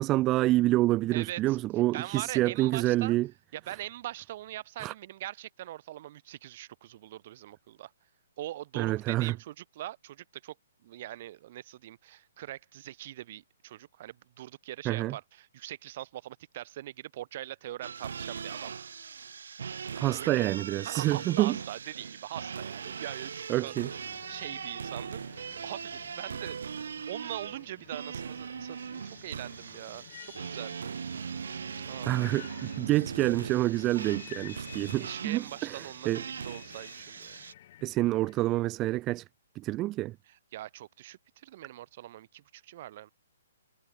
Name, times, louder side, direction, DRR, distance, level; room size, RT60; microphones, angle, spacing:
voice 1, 0.0-3.3 4.8-4.9 8.8-9.3 14.8-15.2 20.0-21.6 23.5-23.9 32.1-32.5 32.8-36.2 37.8-39.2 39.6-40.1, right 17 dB, 15° right, 0.7 m, -27 dB
voice 2, 1.1-1.6 1.9-3.2 3.5-7.9 8.4-10.5 10.8-18.7 19.9-20.4 20.8-23.3 23.6-23.9 24.3-26.6 27.1-30.9 31.8-32.3 34.9-37.4 40.3-43.1, right 14 dB, 35° right, 3.8 m, -42 dB
sound 1, 17.8-37.5, right 6 dB, 70° right, 1.7 m, -40 dB
sound 2, 23.7-38.6, left 13 dB, 35° left, 2.2 m, -52 dB
hypercardioid pair, 175°, 0 cm